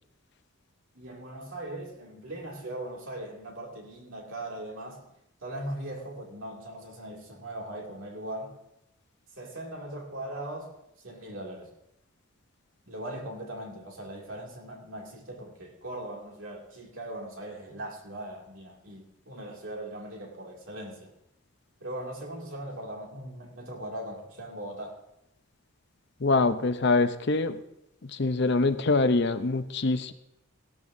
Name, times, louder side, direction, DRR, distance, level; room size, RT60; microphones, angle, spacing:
voice 1, 0.9-5.1 5.4-8.6 9.4-10.8 11.0-11.7 12.9-21.1 21.8-25.0, right 1 dB, 65° right, 0 dB, 2.4 m, -39 dB
voice 2, 26.2-27.6 28.0-30.1, left 3 dB, 50° left, 10 dB, 0.6 m, -24 dB
16.5 x 12.5 x 2.7 m, 0.82 s
head